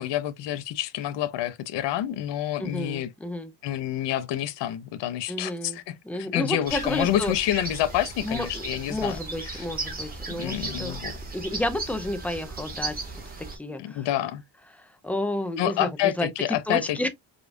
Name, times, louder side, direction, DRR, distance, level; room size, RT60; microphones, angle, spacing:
voice 1, 0.0-3.1 3.6-9.2 9.5-9.6 10.3-11.1 13.8-14.4 15.6-17.1, left 12 dB, 60° left, 0.6 m, -28 dB
voice 2, 2.6-3.5 5.3-5.8 6.0-7.3 8.2-11.0 11.3-13.0 13.5-14.1 14.8-16.3 16.7-17.1, left 1 dB, 5° left, 0.3 m, -31 dB
sound 1, 6.7-13.6, right 3 dB, 20° right, 1.2 m, -36 dB
5.0 x 2.4 x 2.5 m
cardioid pair, 155°, 47 cm